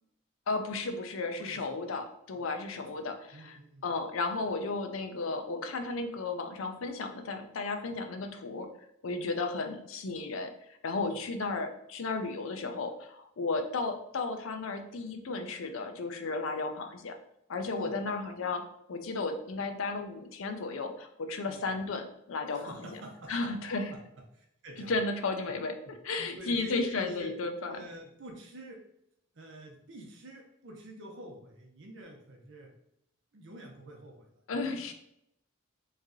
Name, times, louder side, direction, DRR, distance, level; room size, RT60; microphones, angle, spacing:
voice 1, 0.5-8.7 9.0-17.2 17.5-22.7 23.3-24.0 24.9-27.8 34.5-34.9, left 3 dB, 75° left, 6 dB, 0.5 m, -34 dB
voice 2, 1.4-3.9 9.2-9.4 11.0-11.2 17.7-17.9 21.5-21.6 22.5-23.5 23.9-24.0 24.3-25.0 26.2-27.3 27.7-28.8 29.3-32.7 33.3-34.3 34.5-34.9, right 1 dB, 60° right, 0 dB, 0.7 m, -48 dB
3.2 x 2.7 x 3.7 m, 0.77 s
head